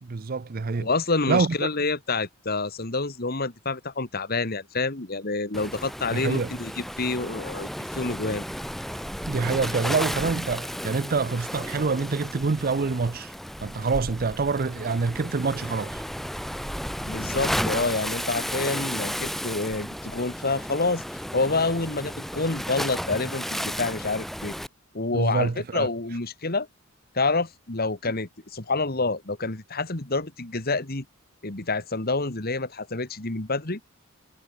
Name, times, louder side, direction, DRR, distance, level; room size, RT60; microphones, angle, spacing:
voice 1, 0.0-0.9 1.3-1.7 6.1-6.5 9.3-13.3 13.6-16.0 25.1-25.9, right 4 dB, 45° right, 0.6 m, -26 dB
voice 2, 0.8-8.4 17.0-24.6 24.9-26.7 27.1-31.0 31.4-33.8, left 3 dB, 50° left, 2.3 m, -28 dB
Waves surf, 5.5-24.7, equal, ahead, 4.2 m, -33 dB
head